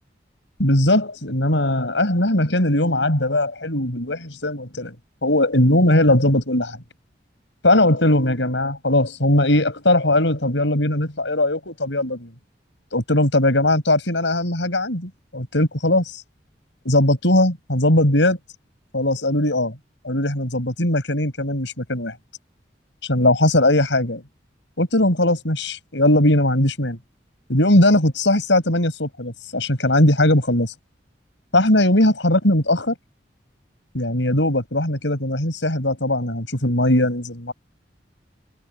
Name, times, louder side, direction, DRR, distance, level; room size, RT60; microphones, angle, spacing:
voice 1, 0.6-4.9 5.2-6.8 7.6-12.3 12.9-16.2 16.8-18.4 18.9-19.7 20.0-22.1 23.0-24.2 24.8-27.0 27.5-30.7 31.5-32.9 33.9-37.5, left 1 dB, 80° left, 6.0 m, -19 dB
head